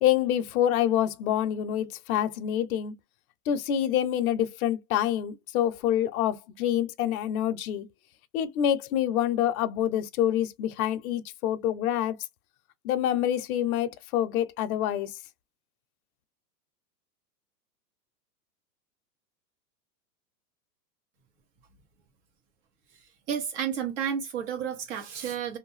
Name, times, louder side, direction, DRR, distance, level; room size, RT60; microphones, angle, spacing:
voice 1, 0.0-2.9 3.5-7.9 8.3-12.2 12.8-15.1, left 11 dB, 60° left, 0.6 m, -26 dB
voice 2, 23.3-25.6, right 8 dB, 45° right, 1.2 m, -31 dB
2.7 x 2.2 x 3.1 m
hypercardioid pair, 145°, 49 cm